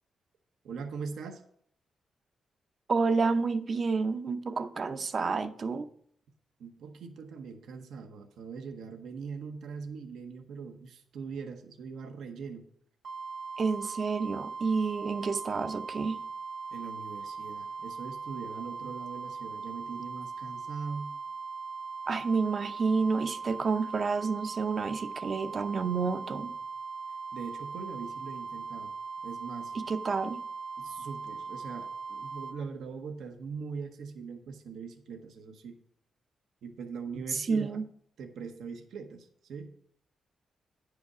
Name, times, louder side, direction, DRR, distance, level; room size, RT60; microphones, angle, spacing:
voice 1, 0.6-1.4 6.6-12.7 16.7-21.2 27.3-28.9 29.2-29.8 30.8-35.8 36.6-37.8 38.2-39.7, right 5 dB, 85° right, 0.9 m, -41 dB
voice 2, 2.9-5.9 13.6-16.2 22.1-26.5 29.7-30.4 37.3-37.8, right 4 dB, 50° right, 0.6 m, -29 dB
sound 1, 13.0-32.6, right 5 dB, 70° right, 1.6 m, -40 dB
9.5 x 4.9 x 6.1 m
cardioid pair, 85°, 0 cm